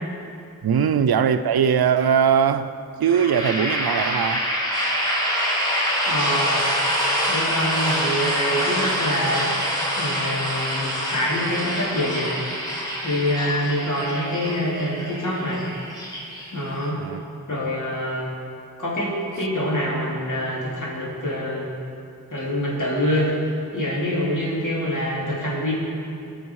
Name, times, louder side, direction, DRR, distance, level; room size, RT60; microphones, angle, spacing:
voice 1, 0.6-2.7 3.0-4.5 17.0-17.2, right 7 dB, 90° right, 0.5 m, -20 dB
sound 1, 3.0-16.9, equal, 10° left, 2.5 m, -26 dB
voice 2, 6.1-6.7 7.3-9.5 10.0-12.3 13.0-15.6 16.5-17.0 17.5-18.3 18.8-21.7 22.3-23.3 23.7-25.7, equal, 55° left, 3.3 m, -25 dB
18.5 x 6.6 x 4.7 m
wide cardioid pair, 65°, 36 cm